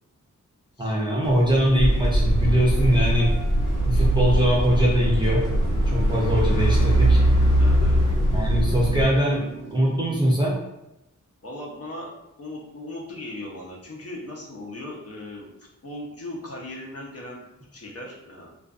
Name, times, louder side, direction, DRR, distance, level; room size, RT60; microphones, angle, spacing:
voice 1, 0.8-3.3 3.9-5.4 5.9-7.2 8.3-9.4 9.7-10.5, equal, 15° right, -6 dB, 0.5 m, -22 dB
sound 1, 1.2-8.4, equal, 55° right, 0.6 m, -34 dB
sound 2, 1.6-10.3, right 4 dB, 90° right, 0.7 m, -40 dB
sound 3, 1.8-9.1, right 1 dB, 70° left, 0.9 m, -21 dB
voice 2, 7.6-8.1 11.4-12.1 12.4-15.5 15.8-17.5 17.7-18.5, left 1 dB, 50° left, -2 dB, 0.7 m, -38 dB
2.4 x 2.3 x 2.4 m, 0.91 s
wide cardioid pair, 85°, 32 cm